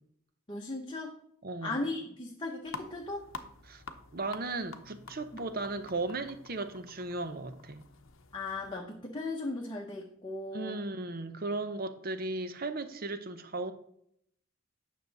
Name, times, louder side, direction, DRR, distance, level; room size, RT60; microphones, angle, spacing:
voice 1, 0.5-1.2 1.6-3.3 8.3-10.8, left 2 dB, 20° left, 0.9 m, -37 dB
voice 2, 1.4-1.8 3.7-3.8 4.1-7.9 10.5-13.7, right 2 dB, 45° right, 0.7 m, -36 dB
sound 1, 2.7-8.8, left 4 dB, 70° left, 0.8 m, -48 dB
9.3 x 6.4 x 4.0 m
head